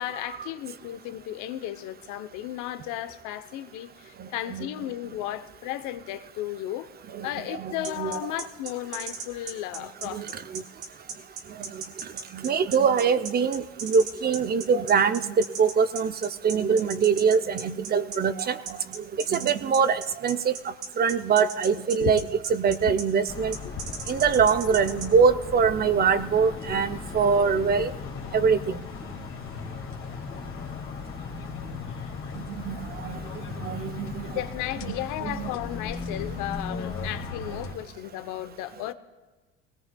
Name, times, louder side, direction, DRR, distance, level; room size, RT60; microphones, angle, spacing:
voice 1, 0.0-6.9 7.2-10.3 22.0-22.1 23.6-23.7 34.3-38.9, left 13 dB, 70° left, 11 dB, 0.8 m, -34 dB
voice 2, 7.6-8.2 10.1-10.3 10.5-10.6 11.7-11.8 12.3-16.1 16.4-18.6 19.0-19.1 19.3-20.5 21.0-22.2 22.5-23.6 24.1-27.9 28.3-28.8 32.5-33.2 33.6-34.3 34.9-35.5, right 6 dB, 30° right, 12 dB, 0.5 m, -23 dB
sound 1, 7.8-25.1, right 5 dB, 45° right, 2.1 m, -36 dB
sound 2, 23.3-37.7, left 4 dB, 40° left, 2.3 m, -37 dB
19.0 x 18.5 x 2.3 m, 1.3 s
supercardioid pair, 105°, 31 cm